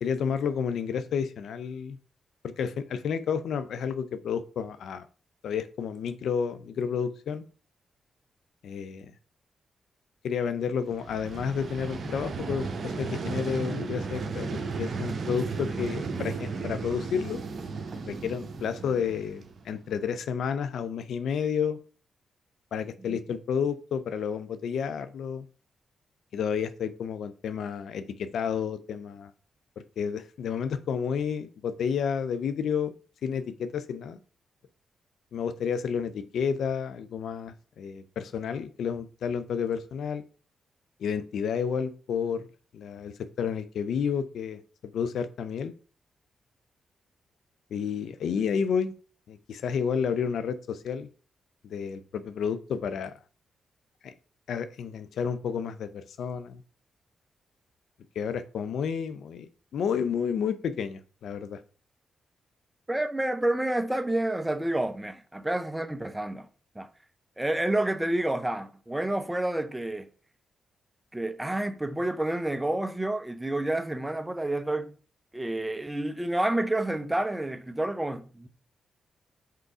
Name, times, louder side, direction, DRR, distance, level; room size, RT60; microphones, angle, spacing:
voice 1, 0.0-2.0 2.4-5.0 5.4-7.4 8.6-9.1 10.2-17.4 18.0-21.8 22.7-25.5 26.3-29.3 30.0-32.9 33.2-34.2 35.3-40.2 41.0-42.4 42.7-44.6 44.9-45.7 47.7-48.9 49.3-51.1 51.7-53.1 54.0-54.1 54.5-56.6 58.2-61.6, left 7 dB, 75° left, 0.5 m, -31 dB
Vehicle, 10.9-19.8, right 4 dB, 60° right, 0.9 m, -34 dB
voice 2, 62.9-66.5 66.7-66.9 67.4-70.1 71.1-75.0 75.3-78.5, right 1 dB, 15° right, 0.9 m, -29 dB
5.5 x 3.8 x 4.8 m
supercardioid pair, 45°, 0 cm